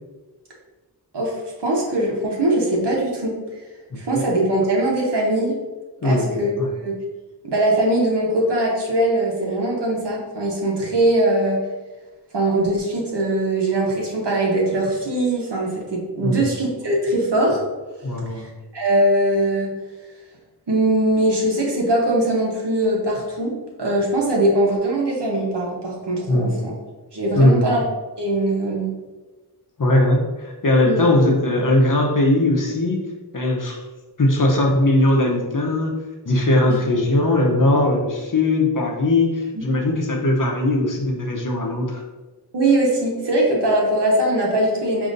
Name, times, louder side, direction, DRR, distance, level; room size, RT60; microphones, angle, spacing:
voice 1, 1.1-3.4 4.0-5.6 6.0-6.5 6.8-6.9 7.4-11.6 12.3-17.6 18.3-19.7 20.7-26.7 27.1-27.8 28.2-28.9 30.8-31.1 36.7-36.8 39.5-39.6 42.5-45.1, right 1 dB, 80° right, -2 dB, 1.0 m, -21 dB
voice 2, 3.9-4.2 6.0-6.7 16.2-16.5 18.0-18.5 26.3-26.6 27.3-27.8 29.8-33.0 33.3-33.8 34.2-35.9 36.3-42.0, left 1 dB, 50° left, 0 dB, 0.8 m, -19 dB
5.2 x 2.7 x 2.6 m, 1.2 s
wide cardioid pair, 65°, 41 cm